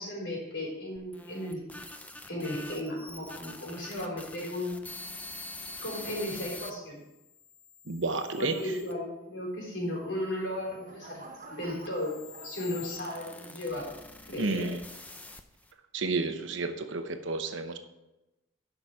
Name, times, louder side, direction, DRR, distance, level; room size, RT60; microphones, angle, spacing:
voice 1, 0.0-1.6 2.3-4.8 5.8-7.0 8.3-12.2 12.4-13.9 14.3-14.7, left 1 dB, 60° left, -3 dB, 4.2 m, -35 dB
sound 1, 1.0-6.7 7.4-8.9 9.7-15.7, left 2 dB, 5° left, 0.5 m, -46 dB
voice 2, 7.9-8.7 14.4-14.8 15.9-17.8, right 3 dB, 70° right, 7 dB, 0.9 m, -31 dB
sound 2, 10.2-13.7 14.3-14.6, right 2 dB, 40° right, 1.2 m, -51 dB
11.5 x 6.0 x 5.0 m, 0.96 s
head